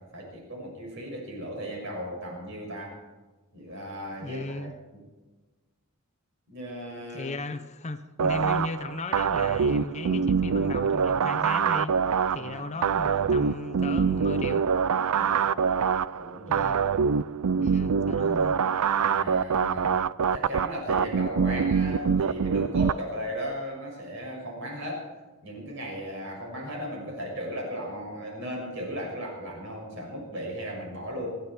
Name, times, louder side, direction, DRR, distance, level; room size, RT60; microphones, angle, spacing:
voice 1, 0.0-3.0 3.5-5.1 6.5-7.3 12.3-12.5 15.1-15.6 16.1-16.7 18.9-20.1 20.3-25.1 25.4-31.4, equal, 55° right, 6.4 m, -36 dB
voice 2, 4.2-4.7 7.1-12.0 12.3-14.7 16.5-16.8 17.6-18.6, left 2 dB, 30° left, 0.7 m, -36 dB
sound 1, 8.2-22.9, right 6 dB, 85° right, 0.4 m, -25 dB
28.0 x 10.5 x 4.5 m
head